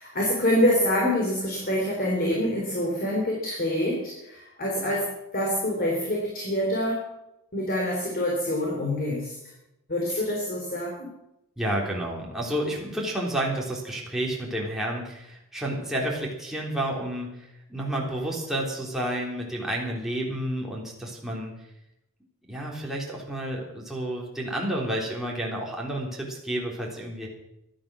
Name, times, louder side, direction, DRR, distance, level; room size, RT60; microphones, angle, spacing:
voice 1, 0.0-7.1 7.5-9.4 9.9-11.1, left 1 dB, 45° left, -2 dB, 3.7 m, -26 dB
voice 2, 11.6-21.5 22.5-27.3, right 1 dB, ahead, -3 dB, 3.5 m, -30 dB
15.5 x 12.0 x 6.3 m, 0.85 s
head